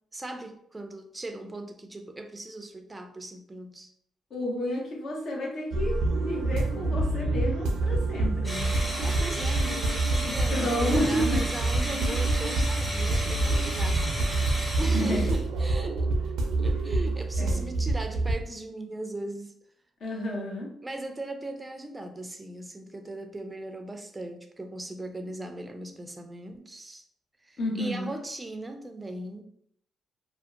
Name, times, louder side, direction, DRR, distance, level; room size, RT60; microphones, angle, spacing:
voice 1, 0.1-3.9 9.0-14.1 14.8-19.5 20.8-27.0 27.4-29.4, right 2 dB, 15° right, 6 dB, 0.4 m, -38 dB
voice 2, 4.3-8.7 10.5-11.4 14.9-15.3 16.8-17.0 17.4-17.8 20.0-20.7 27.6-28.1, equal, 60° left, -1 dB, 0.7 m, -31 dB
sound 1, 5.7-18.3, right 2 dB, 85° right, 0.4 m, -27 dB
sound 2, 8.4-15.4, equal, 10° left, 1.1 m, -34 dB
2.7 x 2.1 x 2.3 m, 0.69 s
cardioid pair, 90°, 0 cm